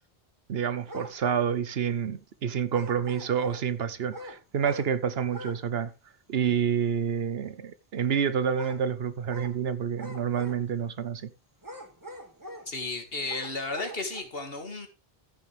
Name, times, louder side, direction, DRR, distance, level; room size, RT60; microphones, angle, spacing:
voice 1, 0.5-5.9 6.3-11.3, right 7 dB, 75° right, 1.1 m, -28 dB
sound 1, 0.9-1.2 2.7-3.7 4.1-4.9 5.3-5.6 5.9-6.0 8.5-8.8 9.3-9.6 10.0-10.8 11.6-12.7 13.2-14.2, left 1 dB, 20° right, 2.0 m, -43 dB
voice 2, 12.7-14.9, left 3 dB, 65° left, 2.4 m, -34 dB
14.5 x 7.0 x 3.4 m
omnidirectional pair, 1.0 m